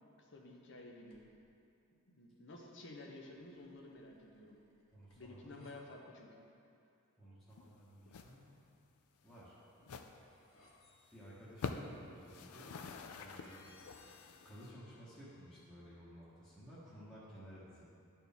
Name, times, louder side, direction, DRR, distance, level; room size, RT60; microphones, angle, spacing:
voice 1, 0.2-1.2 2.1-4.6 5.2-6.4, left 2 dB, 55° left, 0 dB, 0.8 m, -52 dB
sound 1, 1.0-1.5 3.4-5.8 9.3-15.6, left 2 dB, 70° left, 1.2 m, -66 dB
voice 2, 4.9-5.7 7.2-8.6 9.2-9.6 11.1-12.8 13.2-13.9 14.4-17.8, equal, 5° left, -12 dB, 1.2 m, -55 dB
sound 2, 7.5-7.8 8.1-8.3 8.6-8.8 9.2-9.3 9.8-10.1 10.6-10.7 11.0-11.1 11.5-12.0 12.2-14.7, left 5 dB, 90° left, 0.4 m, -46 dB
11.5 x 4.4 x 3.5 m, 2.5 s
head